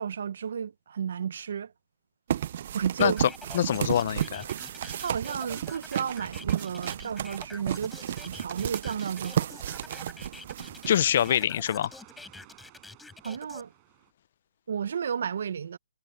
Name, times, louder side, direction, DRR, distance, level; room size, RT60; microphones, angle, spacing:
voice 1, 0.0-1.7 2.7-3.2 5.0-9.6 13.2-13.7 14.7-15.8, right 7 dB, 60° right, 1.1 m, -32 dB
sound 1, 2.3-11.8, right 10 dB, 45° right, 0.5 m, -33 dB
sound 2, 2.4-14.1, right 30 dB, 25° right, 5.1 m, -59 dB
voice 2, 3.0-4.5 10.9-11.9, left 10 dB, 45° left, 0.6 m, -25 dB
sound 3, 3.0-13.6, left 3 dB, 5° left, 4.2 m, -47 dB
hypercardioid pair, 160°, 0 cm